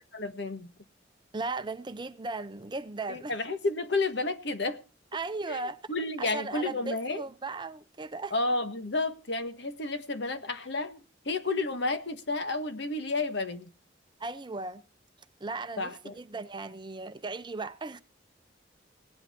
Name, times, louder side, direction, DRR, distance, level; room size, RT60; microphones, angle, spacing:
voice 1, 0.1-0.7 3.1-4.8 5.5-7.2 8.3-13.7 15.8-16.2, left 2 dB, 65° left, 1.5 m, -31 dB
voice 2, 1.3-3.3 5.1-5.8 6.2-8.3 14.2-14.8 15.4-15.9 16.2-18.0, right 3 dB, 25° right, 0.7 m, -36 dB
18.0 x 11.5 x 4.4 m
head